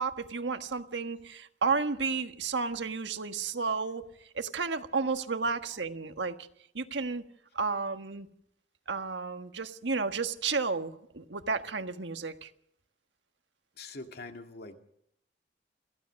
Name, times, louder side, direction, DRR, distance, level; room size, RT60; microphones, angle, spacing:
voice 1, 0.0-4.0 4.3-6.4 6.7-7.2 7.5-8.3 8.9-12.5, right 4 dB, 80° right, 1.5 m, -32 dB
voice 2, 13.8-14.8, left 3 dB, 60° left, 2.1 m, -43 dB
26.0 x 15.5 x 6.4 m
head